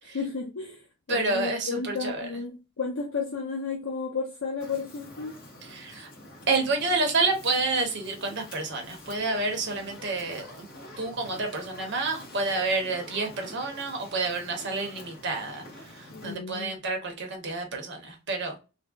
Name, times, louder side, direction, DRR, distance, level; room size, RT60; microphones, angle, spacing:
voice 1, 0.0-5.4 9.7-9.8 16.1-16.7, left 4 dB, 65° left, 0.6 m, -33 dB
voice 2, 1.1-2.3 5.7-6.1 6.5-10.7 11.0-18.6, right 3 dB, 55° right, 0.9 m, -29 dB
Fire, 4.6-16.3, left 1 dB, 45° left, 1.1 m, -47 dB
3.5 x 2.1 x 2.3 m
head